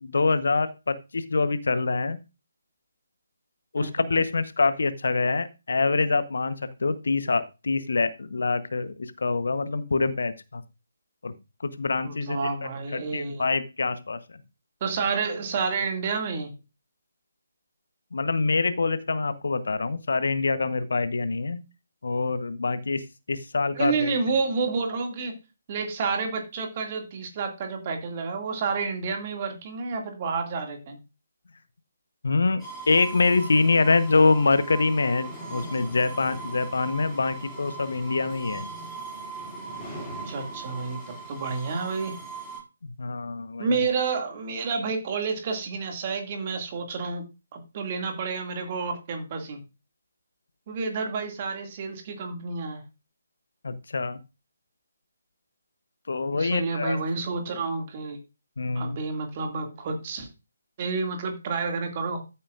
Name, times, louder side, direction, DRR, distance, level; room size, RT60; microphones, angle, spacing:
voice 1, 0.0-2.2 3.7-10.6 11.2-11.3 11.6-12.5 12.9-14.2 18.1-21.6 22.0-24.1 32.2-38.6 43.0-43.8 53.6-54.2 56.1-57.0 58.6-59.0, left 3 dB, 60° left, 13 dB, 1.0 m, -25 dB
voice 2, 3.8-4.2 12.0-13.5 14.8-16.5 23.7-25.4 25.7-31.0 40.0-42.2 43.6-47.2 47.5-49.6 50.7-52.8 56.3-58.2 58.7-60.3 60.8-62.4, right 4 dB, 30° right, 4 dB, 2.2 m, -30 dB
sound 1, 32.6-42.6, right 3 dB, 5° left, 7.0 m, -39 dB
14.0 x 8.6 x 2.5 m, 0.28 s
figure-of-eight pair, 145°, 0 cm